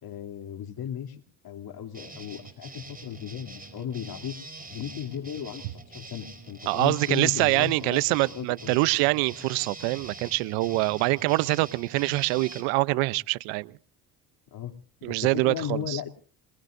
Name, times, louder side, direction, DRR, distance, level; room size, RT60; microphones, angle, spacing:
voice 1, 0.0-4.4 4.7-8.8 14.5-14.7 15.0-16.1, left 9 dB, 55° left, 3 dB, 3.0 m, -36 dB
sound 1, 1.9-12.6, right 2 dB, 20° right, 5.0 m, -44 dB
voice 2, 6.7-13.7 15.0-16.0, right 22 dB, 85° right, 18 dB, 0.8 m, -25 dB
26.5 x 20.5 x 2.6 m, 0.41 s
supercardioid pair, 70°, 45 cm